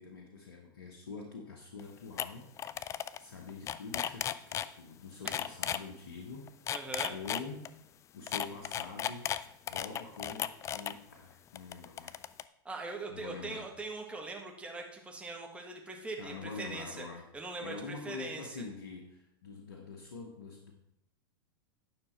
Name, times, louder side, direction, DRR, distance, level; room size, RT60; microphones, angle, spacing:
voice 1, 0.0-6.8 7.1-7.7 8.1-9.3 9.7-12.2 13.1-13.7 16.2-17.2 17.6-20.7, left 4 dB, 85° left, 2 dB, 1.2 m, -45 dB
sound 1, 1.8-1.9 2.2-2.3 2.6-3.2 3.5-4.7 5.3-5.8 6.5-7.7 8.3-10.9 11.6-12.4, left 10 dB, 25° left, 0.4 m, -35 dB
voice 2, 6.7-7.1 12.7-17.1 17.3-18.4, right 3 dB, 10° right, 1 dB, 1.6 m, -41 dB
9.5 x 6.0 x 4.4 m, 0.73 s
hypercardioid pair, 105°, 12 cm